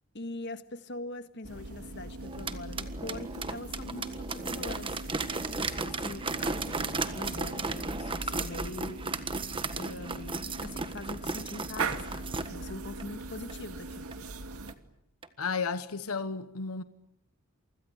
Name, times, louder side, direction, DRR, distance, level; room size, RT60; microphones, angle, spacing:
voice 1, 0.1-5.0 5.5-9.0 9.3-14.1, left 2 dB, 55° left, 1.7 m, -43 dB
sound 1, 1.4-14.7, right 3 dB, 85° right, 2.2 m, -40 dB
sound 2, 2.2-12.5 13.0-13.1 13.5-13.6 14.1-14.2 14.7-14.8 15.2-15.3, right 3 dB, 25° right, 1.5 m, -35 dB
voice 2, 15.4-16.8, left 5 dB, 85° left, 1.1 m, -33 dB
29.0 x 25.0 x 8.1 m
head